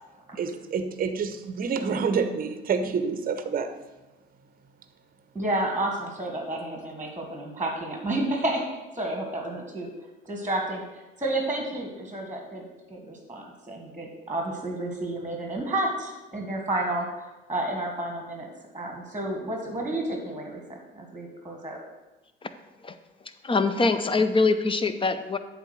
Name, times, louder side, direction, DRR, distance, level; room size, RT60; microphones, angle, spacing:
voice 1, 0.4-3.7, right 5 dB, 30° right, 9 dB, 0.8 m, -28 dB
voice 2, 5.3-8.7 8.9-9.9 10.2-18.5 18.7-21.8, right 1 dB, 5° right, 1 dB, 1.6 m, -31 dB
voice 3, 23.4-25.4, left 3 dB, 20° left, 10 dB, 0.6 m, -23 dB
8.1 x 3.7 x 6.4 m, 1.1 s
hypercardioid pair, 65°, 29 cm